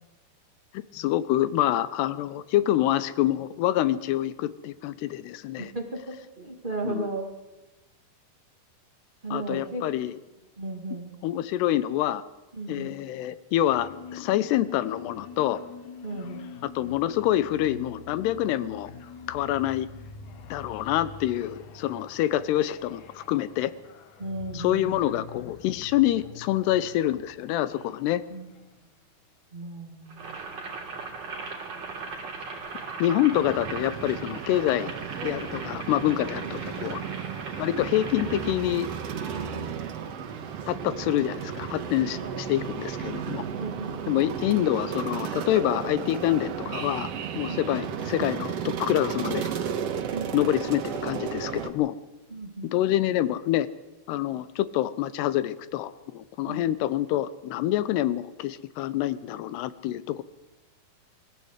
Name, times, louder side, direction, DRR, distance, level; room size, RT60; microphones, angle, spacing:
voice 1, 0.7-5.7 6.8-7.1 9.3-10.2 11.2-12.2 12.7-15.6 16.6-18.9 19.3-19.9 20.5-23.7 24.5-28.2 33.0-34.9 35.2-37.0 37.6-38.9 40.7-43.5 44.1-49.5 50.3-52.0 52.7-53.7 54.1-60.2, left 13 dB, 80° left, 15 dB, 2.8 m, -26 dB
voice 2, 5.6-7.3 9.2-9.9 10.6-11.1 12.5-12.9 16.0-16.5 24.2-25.0 28.3-28.5 29.5-30.4 36.4-36.8 39.3-39.7 42.2-42.4 43.5-44.0 47.4-47.8 50.1-50.5 52.3-52.7 56.4-56.6, right 2 dB, 80° right, 2 dB, 0.4 m, -36 dB
sound 1, 13.7-28.8, left 5 dB, 60° left, 2.2 m, -45 dB
Boiling, 30.1-39.5, right 4 dB, 40° right, 4.0 m, -39 dB
sound 2, 33.3-51.7, right 8 dB, 65° right, 1.6 m, -34 dB
23.5 x 15.0 x 8.1 m, 1.1 s
omnidirectional pair, 4.8 m